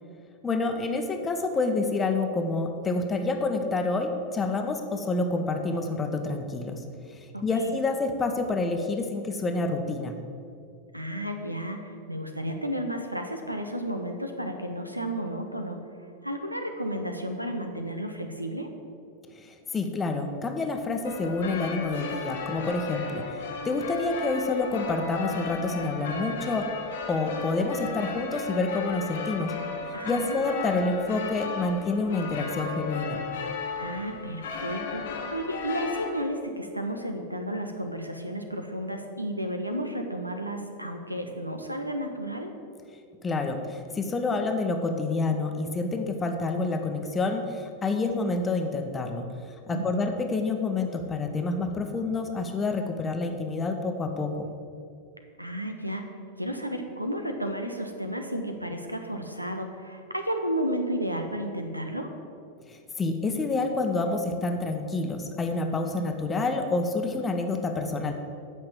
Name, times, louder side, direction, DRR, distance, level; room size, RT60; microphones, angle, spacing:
voice 1, 0.4-6.8 7.1-10.2 19.3-26.7 27.1-29.5 30.0-33.2 43.2-49.3 49.7-54.5 62.7-68.1, left 3 dB, 20° left, 5 dB, 1.0 m, -28 dB
voice 2, 7.3-7.7 10.9-15.9 16.2-18.7 29.9-30.4 33.8-42.5 49.7-50.1 55.4-62.1, equal, 90° right, 5 dB, 1.0 m, -32 dB
sound 1, 21.0-36.1, left 5 dB, 60° left, 1.4 m, -35 dB
8.8 x 5.8 x 7.6 m, 2.4 s
figure-of-eight pair, 90°, 0 cm